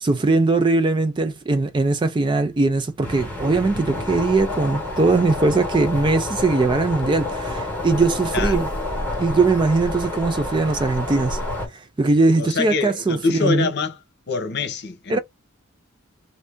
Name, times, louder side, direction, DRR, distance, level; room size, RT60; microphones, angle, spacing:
voice 1, 0.0-8.7 9.2-11.4 12.0-13.7 15.1-15.2, right 3 dB, 20° right, 0.3 m, -20 dB
sound 1, 3.0-11.7, left 2 dB, 10° left, 1.4 m, -28 dB
voice 2, 12.4-14.0 14.3-15.2, left 4 dB, 50° left, 0.8 m, -24 dB
2.7 x 2.6 x 3.4 m
head